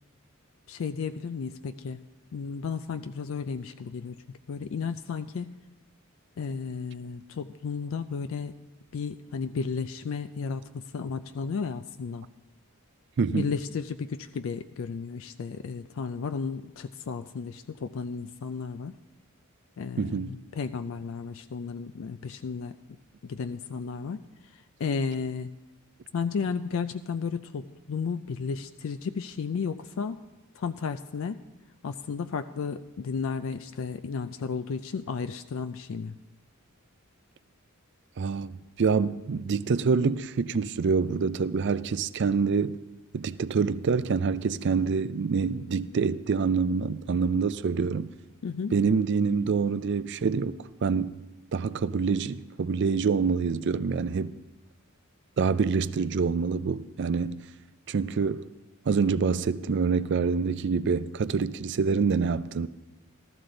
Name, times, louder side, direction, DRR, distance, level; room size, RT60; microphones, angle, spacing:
voice 1, 0.7-2.0 2.3-4.2 4.5-5.6 6.4-8.5 8.9-12.3 13.3-19.0 19.8-22.7 23.2-24.2 24.5-25.5 26.1-30.2 30.6-31.4 31.8-36.2 48.4-48.7, left 5 dB, 65° left, 0.4 m, -33 dB
voice 2, 13.2-13.5 20.0-20.3 38.2-42.8 43.1-48.1 48.7-51.2 51.5-54.4 55.4-57.4 57.9-58.5 58.9-62.7, right 5 dB, 55° right, 0.4 m, -26 dB
14.5 x 13.5 x 3.8 m
head